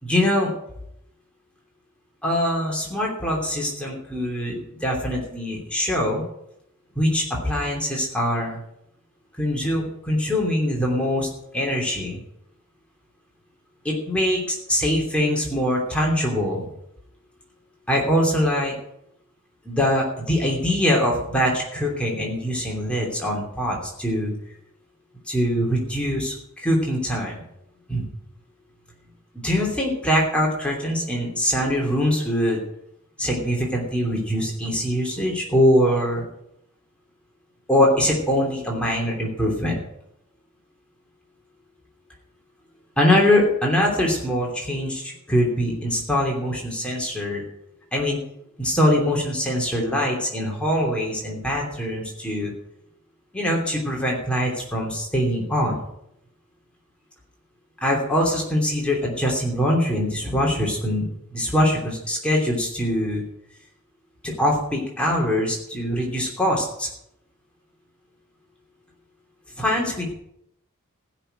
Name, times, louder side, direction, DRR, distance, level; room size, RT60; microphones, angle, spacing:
voice 1, 0.0-0.5 2.2-6.2 6.9-8.6 9.4-11.3 11.5-12.2 13.8-16.7 17.9-18.8 19.6-24.3 25.3-27.4 27.9-28.0 29.4-32.6 33.2-36.2 37.7-39.8 43.0-47.4 47.9-48.2 48.6-52.5 53.3-55.7 57.8-61.0 61.3-63.2 64.2-66.9 69.6-70.1, equal, 5° left, -2 dB, 3.0 m, -23 dB
15.5 x 6.1 x 9.0 m, 0.79 s
head